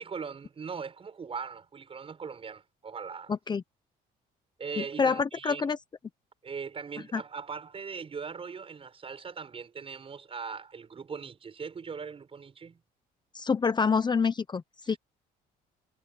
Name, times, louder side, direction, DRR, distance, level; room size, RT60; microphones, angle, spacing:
voice 1, 0.0-3.3 4.6-5.7 6.4-12.8, right 5 dB, 35° right, 6.9 m, -40 dB
voice 2, 3.3-3.6 4.8-5.8 7.1-7.2 13.3-15.0, left 5 dB, 25° left, 0.9 m, -27 dB
cardioid pair, 110°, 17 cm